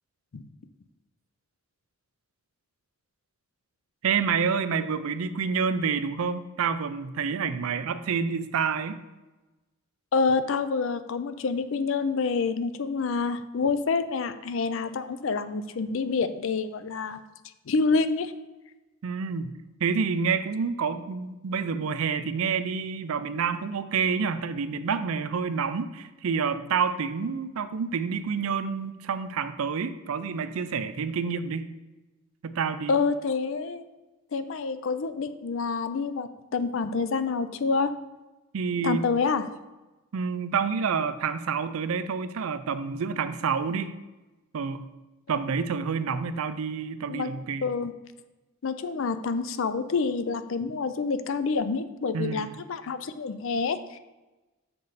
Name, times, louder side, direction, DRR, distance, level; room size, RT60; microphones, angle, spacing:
voice 1, 4.0-9.0 19.0-19.5 19.8-31.7 32.4-33.0 38.5-39.1 40.1-43.9 44.5-44.9 45.3-47.7 52.1-52.5, right 6 dB, 75° right, 13 dB, 0.4 m, -28 dB
voice 2, 10.1-17.2 17.7-18.3 32.9-33.8 34.3-37.9 38.8-39.4 47.1-47.3 47.6-47.9 48.6-54.0, left 4 dB, 60° left, 11 dB, 0.4 m, -27 dB
6.7 x 5.3 x 4.1 m, 1.1 s
head